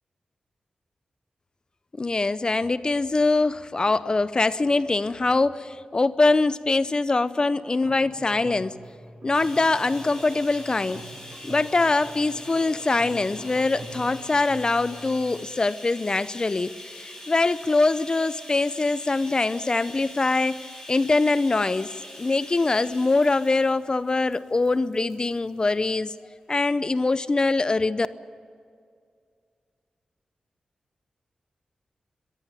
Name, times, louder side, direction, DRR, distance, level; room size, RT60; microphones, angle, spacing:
voice 1, 2.0-8.8 9.2-11.1 11.4-26.1 26.5-28.1, left 3 dB, 35° left, 0.7 m, -23 dB
sound 1, 7.7-15.2, right 2 dB, 70° right, 6.3 m, -44 dB
Bathtub (filling or washing), 9.3-26.0 26.9-27.0 27.4-27.5, left 1 dB, 20° left, 7.8 m, -43 dB
21.0 x 15.0 x 9.9 m
cardioid pair, 65°, 2 cm